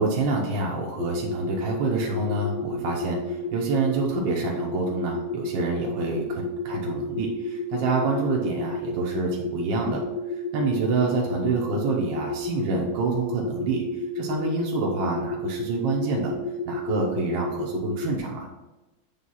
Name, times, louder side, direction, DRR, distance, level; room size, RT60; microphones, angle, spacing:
voice 1, 0.0-10.0 10.3-13.8 14.1-16.3 16.6-18.5, right 3 dB, 65° right, -1 dB, 1.7 m, -27 dB
sound 1, 1.0-18.2, left 2 dB, 75° left, 1.3 m, -31 dB
7.4 x 3.6 x 5.5 m, 1.1 s
omnidirectional pair, 2.2 m